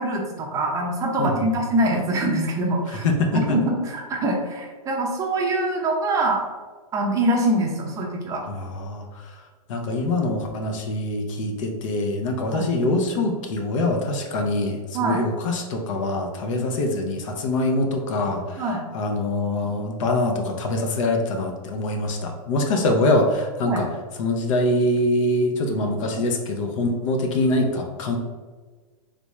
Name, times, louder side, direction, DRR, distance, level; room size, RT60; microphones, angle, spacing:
voice 1, 0.0-3.0 3.3-6.5 6.9-8.4 12.5-12.7 14.9-15.2 16.5-16.6 18.6-18.8 23.6-23.8, right 1 dB, 15° right, 0 dB, 0.5 m, -24 dB
voice 2, 2.9-3.3 8.5-9.4 9.7-18.7 18.9-23.9 24.2-28.2, left 2 dB, 55° left, 2 dB, 0.6 m, -24 dB
3.3 x 2.5 x 3.1 m, 1.4 s
hypercardioid pair, 140°, 19 cm